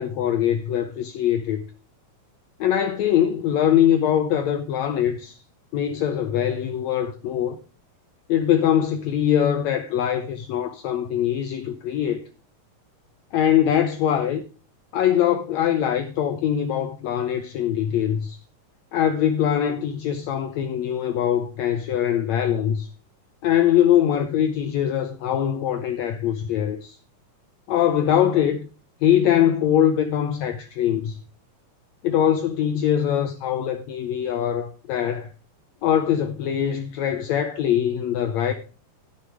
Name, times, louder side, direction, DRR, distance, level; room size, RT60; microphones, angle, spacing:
voice 1, 0.0-1.6 2.6-5.4 5.7-7.6 8.3-12.2 13.3-14.4 14.9-18.4 18.9-22.9 23.4-27.0 27.7-28.7 29.0-31.2 32.0-35.3 35.8-38.5, left 10 dB, 80° left, 1.7 m, -22 dB
13.0 x 6.8 x 4.8 m
omnidirectional pair, 3.9 m